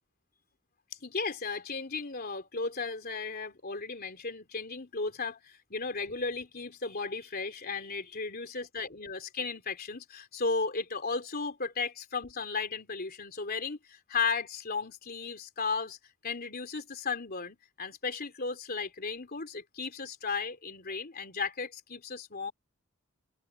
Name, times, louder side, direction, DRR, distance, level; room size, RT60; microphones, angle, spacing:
voice 1, 1.0-16.0 16.2-22.5, left 4 dB, 45° left, 3.4 m, -35 dB
open air
head